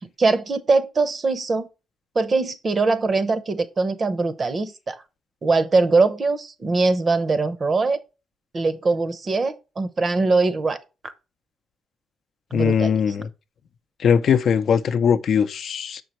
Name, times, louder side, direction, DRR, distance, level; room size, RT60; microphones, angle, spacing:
voice 1, 0.2-1.7 2.1-5.0 5.4-8.0 8.5-10.8 12.5-13.0, right 3 dB, 35° right, 0.8 m, -22 dB
voice 2, 12.5-13.3 14.0-16.0, left 7 dB, 60° left, 0.5 m, -20 dB
6.6 x 5.3 x 3.0 m
cardioid pair, 90°, 0 cm